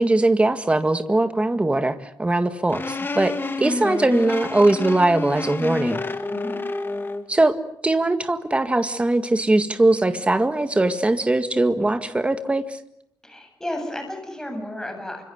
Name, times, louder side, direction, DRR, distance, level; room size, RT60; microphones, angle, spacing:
voice 1, 0.0-6.0 7.3-7.6 7.8-12.8, right 2 dB, 15° right, 9 dB, 1.8 m, -21 dB
sound 1, 2.7-7.3, left 3 dB, 30° left, 2.2 m, -29 dB
voice 2, 13.2-15.2, left 1 dB, 5° left, 4 dB, 8.0 m, -32 dB
28.5 x 26.0 x 8.1 m, 0.70 s
wide cardioid pair, 165°, 8 cm